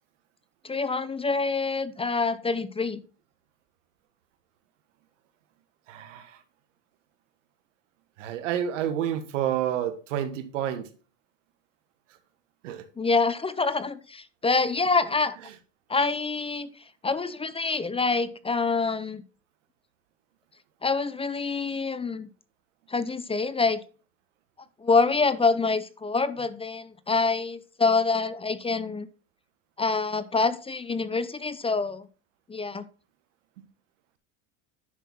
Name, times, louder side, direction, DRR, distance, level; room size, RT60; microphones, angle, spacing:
voice 1, 0.6-3.0 13.0-15.4 15.9-16.7 17.0-19.2 20.8-22.3 22.9-23.8 24.8-29.1 29.8-32.1 32.5-32.9, left 4 dB, 15° left, 0.6 m, -26 dB
voice 2, 5.9-6.4 8.2-10.9 12.6-12.8 33.6-33.7, right 10 dB, 85° right, 1.5 m, -29 dB
10.5 x 6.1 x 4.0 m
supercardioid pair, 100°, 36 cm